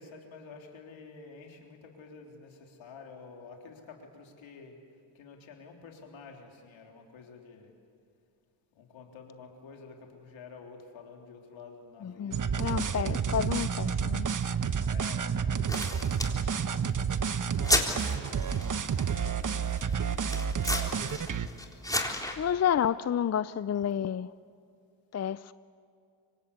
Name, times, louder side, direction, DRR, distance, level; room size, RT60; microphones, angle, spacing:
voice 1, 0.0-4.8 5.2-7.7 8.7-13.5 14.9-15.9 17.5-19.8 20.2-22.4, left 4 dB, 80° left, 3.6 m, -50 dB
voice 2, 12.0-14.3 22.4-24.3 25.1-25.5, left 9 dB, 35° left, 0.6 m, -30 dB
sound 1, 12.3-21.5, right 7 dB, 40° right, 1.1 m, -30 dB
sound 2, 15.7-22.4, left 1 dB, 10° left, 3.7 m, -34 dB
25.5 x 24.0 x 8.3 m
supercardioid pair, 55°, 46 cm